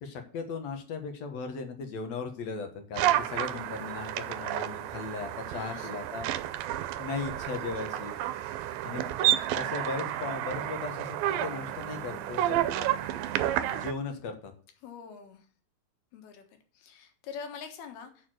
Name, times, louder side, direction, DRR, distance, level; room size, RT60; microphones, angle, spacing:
voice 1, 0.0-6.3 7.0-8.1 8.8-12.7 13.7-14.5, left 4 dB, 55° left, 6 dB, 2.2 m, -37 dB
sound 1, 2.9-13.9, right 12 dB, 80° right, 2.3 m, -31 dB
voice 2, 5.5-6.0 14.8-15.5 16.1-16.5 16.7-18.3, left 6 dB, 85° left, 6 dB, 3.5 m, -44 dB
7.0 x 6.7 x 7.7 m, 0.42 s
omnidirectional pair, 4.4 m